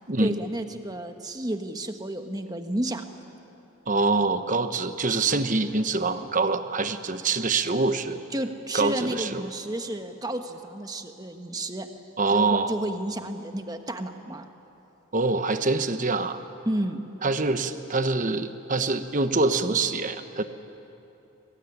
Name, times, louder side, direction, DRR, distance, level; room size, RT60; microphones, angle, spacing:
voice 1, 0.2-3.0 8.3-11.9 12.3-14.5 16.6-17.0, right 1 dB, 20° right, 6 dB, 1.3 m, -31 dB
voice 2, 3.9-8.2 8.7-9.5 12.2-12.7 15.1-16.4 17.2-20.4, right 3 dB, 40° right, 9 dB, 1.1 m, -25 dB
24.0 x 20.5 x 10.0 m, 2.9 s
head